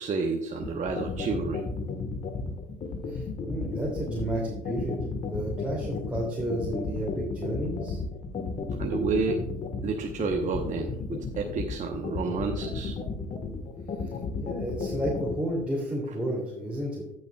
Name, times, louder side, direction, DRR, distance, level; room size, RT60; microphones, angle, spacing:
voice 1, 0.0-1.6 8.7-9.4 9.8-13.0, right 4 dB, 45° right, 2 dB, 1.0 m, -30 dB
sound 1, 0.6-15.3, left 5 dB, 45° left, 1.5 m, -33 dB
voice 2, 3.1-5.0 5.3-8.0 14.4-17.0, right 1 dB, 5° right, -5 dB, 2.7 m, -31 dB
15.0 x 6.6 x 2.3 m, 0.87 s
hypercardioid pair, 75°, 18 cm